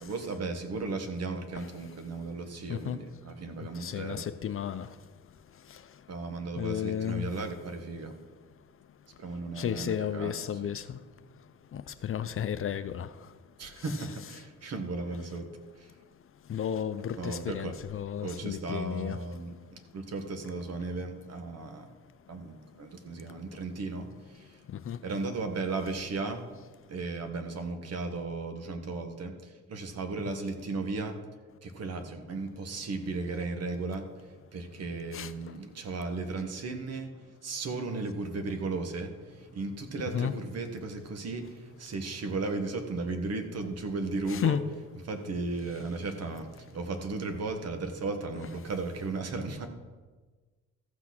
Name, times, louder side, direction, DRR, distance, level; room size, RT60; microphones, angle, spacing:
voice 1, 0.0-4.2 6.1-8.1 9.2-10.7 13.6-15.5 15.8-15.9 17.1-17.8 18.2-21.9 22.3-24.6 25.0-26.4 26.9-31.2 31.6-34.1 34.5-37.1 37.4-44.6 44.9-49.7, right 3 dB, 55° right, 1.5 m, -35 dB
voice 2, 3.8-4.9 6.6-7.3 9.6-10.8 11.7-13.1 16.5-19.2 24.9-25.0 35.1-35.3 40.1-40.3 44.3-44.6, left 9 dB, 45° left, 0.6 m, -32 dB
14.0 x 6.1 x 6.0 m
cardioid pair, 90°, 30 cm